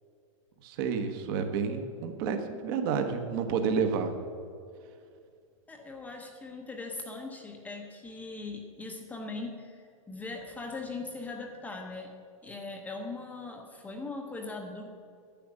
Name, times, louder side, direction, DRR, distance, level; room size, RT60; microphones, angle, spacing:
voice 1, 0.6-4.1, right 6 dB, 40° right, 6 dB, 1.2 m, -30 dB
voice 2, 5.7-12.1 12.4-14.9, left 3 dB, 10° left, 1 dB, 0.9 m, -40 dB
10.5 x 9.3 x 7.4 m, 2.4 s
supercardioid pair, 160°, 17 cm